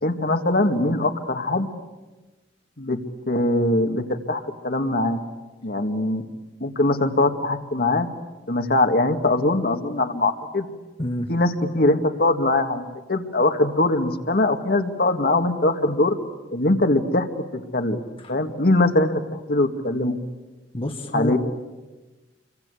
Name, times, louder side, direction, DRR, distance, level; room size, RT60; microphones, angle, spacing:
voice 1, 0.0-1.7 2.8-3.0 3.3-5.2 5.6-6.2 6.6-8.1 8.5-10.7 11.3-16.2 16.5-17.3 17.7-20.2 21.1-21.4, left 2 dB, 55° left, 6 dB, 2.1 m, -22 dB
voice 2, 11.0-11.3 20.7-21.4, left 1 dB, 30° left, 4 dB, 1.4 m, -27 dB
28.5 x 24.0 x 8.5 m, 1.2 s
head